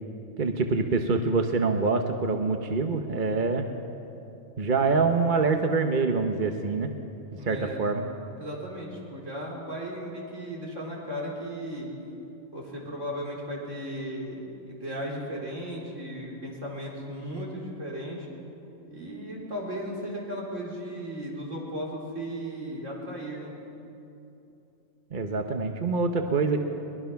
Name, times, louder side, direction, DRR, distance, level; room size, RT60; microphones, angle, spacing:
voice 1, 0.4-3.7 4.6-6.9 7.4-8.0 25.1-26.6, right 4 dB, 40° right, 5 dB, 1.0 m, -25 dB
voice 2, 7.3-7.8 8.4-11.9 12.5-18.3 18.9-23.5, equal, 70° right, -3 dB, 4.5 m, -36 dB
22.5 x 21.0 x 5.8 m, 2.8 s
omnidirectional pair, 1.3 m